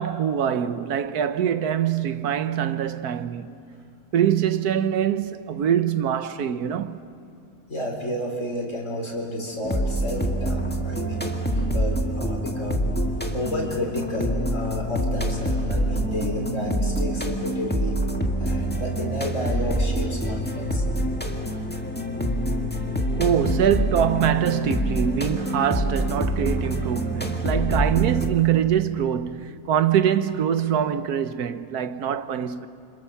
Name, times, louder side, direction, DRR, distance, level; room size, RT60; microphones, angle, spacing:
voice 1, 0.0-3.5 4.1-7.0 23.2-32.7, right 9 dB, 80° right, 1.4 m, -24 dB
voice 2, 7.7-12.9 13.3-18.0 18.4-20.8, equal, 55° left, 4.9 m, -31 dB
sound 1, 9.6-28.3, right 1 dB, 5° left, 1.7 m, -26 dB
29.0 x 27.0 x 7.1 m
omnidirectional pair, 1.6 m